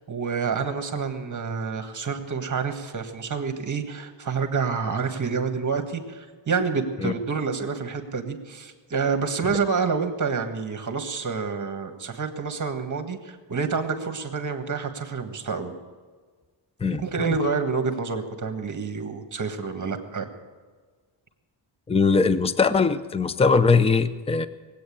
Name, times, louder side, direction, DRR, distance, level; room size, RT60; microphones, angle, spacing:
voice 1, 0.1-15.7 17.0-20.3, right 5 dB, 40° right, 7 dB, 1.6 m, -28 dB
voice 2, 16.8-17.3 21.9-24.5, left 4 dB, 15° left, 13 dB, 0.5 m, -21 dB
19.5 x 8.6 x 8.5 m, 1.5 s
wide cardioid pair, 140°, 48 cm